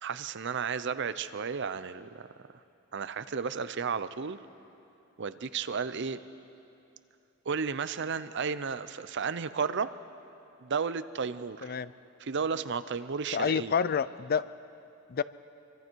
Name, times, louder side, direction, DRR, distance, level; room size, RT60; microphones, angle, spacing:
voice 1, 0.0-2.2 2.9-4.4 5.2-6.2 7.5-9.9 10.6-11.8 12.2-13.7, right 5 dB, 60° right, 13 dB, 0.6 m, -33 dB
voice 2, 11.6-11.9 13.3-14.4 15.1-15.2, left 6 dB, 45° left, 16 dB, 0.4 m, -28 dB
24.5 x 24.5 x 4.6 m, 2.9 s
head